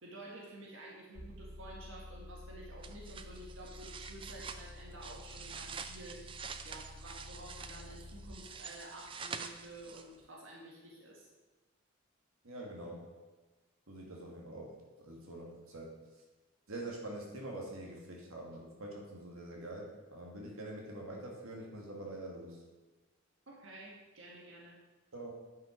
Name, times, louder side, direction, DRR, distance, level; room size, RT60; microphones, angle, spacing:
voice 1, 0.0-6.2 6.6-11.3 23.5-24.8, right 1 dB, 70° right, -3 dB, 1.7 m, -51 dB
sound 1, 1.2-8.3, left 1 dB, 15° left, 1.8 m, -51 dB
sound 2, 2.8-10.3, right 6 dB, 25° right, 0.4 m, -47 dB
voice 2, 12.4-13.1 13.9-15.9 16.7-22.6 25.1-25.3, right 1 dB, 85° right, -1 dB, 1.8 m, -45 dB
9.8 x 5.8 x 5.0 m, 1.2 s
head